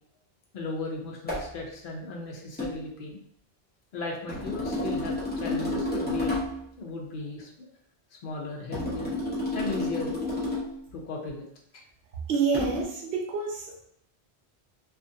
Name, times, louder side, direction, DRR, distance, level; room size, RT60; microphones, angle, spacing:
voice 1, 0.5-3.2 3.9-6.4 6.8-7.7 8.2-9.2 9.5-10.2 10.9-11.4 11.7-11.8, left 3 dB, 60° left, 0 dB, 0.8 m, -36 dB
sound 1, 1.3-1.5 2.6-2.8 4.3-6.6 8.7-10.8 12.5-12.8, left 1 dB, 10° left, 0.6 m, -30 dB
voice 2, 12.3-13.9, right 5 dB, 75° right, 0 dB, 0.9 m, -28 dB
2.4 x 2.4 x 2.6 m, 0.70 s
omnidirectional pair, 1.1 m